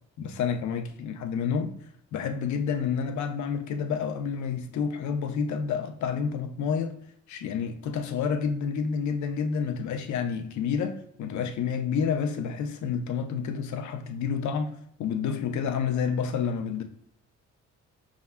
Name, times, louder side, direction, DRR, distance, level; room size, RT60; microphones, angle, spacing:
voice 1, 0.2-1.7 2.1-7.0 7.3-16.8, left 6 dB, 70° left, 0.7 m, -29 dB
5.3 x 3.6 x 2.2 m
cardioid pair, 90°, 30 cm